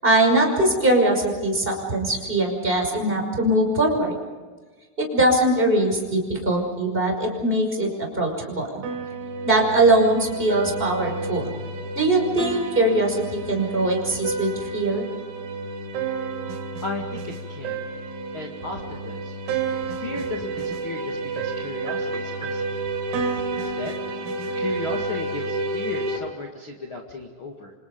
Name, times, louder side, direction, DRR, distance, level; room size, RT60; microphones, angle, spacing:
voice 1, 0.0-4.2 5.0-8.8 9.4-11.5 12.0-15.1, right 1 dB, 10° right, 0 dB, 5.2 m, -21 dB
sound 1, 8.8-26.2, right 3 dB, 90° right, 5.7 m, -30 dB
voice 2, 16.8-17.8 18.3-19.4 19.9-22.7 23.5-24.0 24.5-27.7, left 3 dB, 65° left, 1 dB, 1.3 m, -35 dB
29.0 x 26.5 x 5.4 m, 1.4 s
omnidirectional pair, 5.9 m